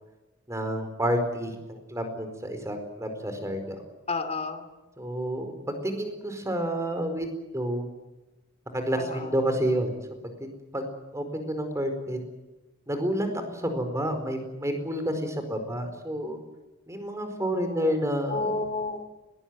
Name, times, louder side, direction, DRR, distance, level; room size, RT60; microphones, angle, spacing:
voice 1, 0.5-3.8 5.0-5.5 5.8-7.9 8.7-9.9 10.4-10.5 10.7-10.8 11.1-12.2 12.9-16.4 16.9-18.6, equal, 15° right, 7 dB, 4.6 m, -29 dB
voice 2, 4.1-4.7 9.0-9.3 17.5-17.9 18.3-19.0, left 3 dB, 30° left, 9 dB, 2.7 m, -31 dB
21.5 x 20.0 x 9.5 m, 1.1 s
head